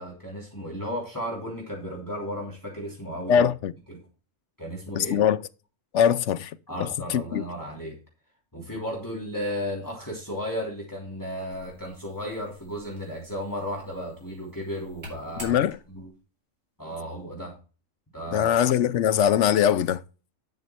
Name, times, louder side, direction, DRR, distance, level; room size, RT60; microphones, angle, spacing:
voice 1, 0.0-3.5 3.9-4.0 4.6-5.2 6.7-8.0 8.5-15.6 15.9-16.1 16.8-17.5 18.1-18.5, equal, 15° left, 3.3 m, -34 dB
voice 2, 3.3-3.7 5.0-5.4 5.9-6.5 7.1-7.4 15.4-15.8 18.3-20.0, left 9 dB, 65° left, 0.9 m, -21 dB
sound 1, 11.5-16.2, equal, 65° right, 6.8 m, -48 dB
11.0 x 6.6 x 4.4 m
omnidirectional pair, 1.4 m